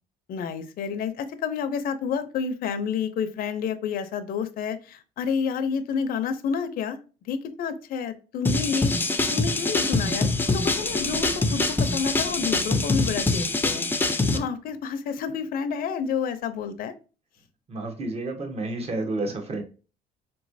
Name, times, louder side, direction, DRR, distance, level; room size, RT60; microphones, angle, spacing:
voice 1, 0.3-7.0 7.2-8.9 9.3-16.9, left 6 dB, 60° left, 9 dB, 0.5 m, -29 dB
sound 1, 8.5-14.4, left 3 dB, 10° left, 0.5 m, -24 dB
sound 2, 10.0-13.9 14.7-14.8 15.2-15.3, right 1 dB, 70° right, 0.9 m, -45 dB
voice 2, 17.7-19.6, right 2 dB, 35° right, 3 dB, 1.1 m, -30 dB
4.4 x 3.0 x 2.6 m, 0.35 s
cardioid pair, 110°, 17 cm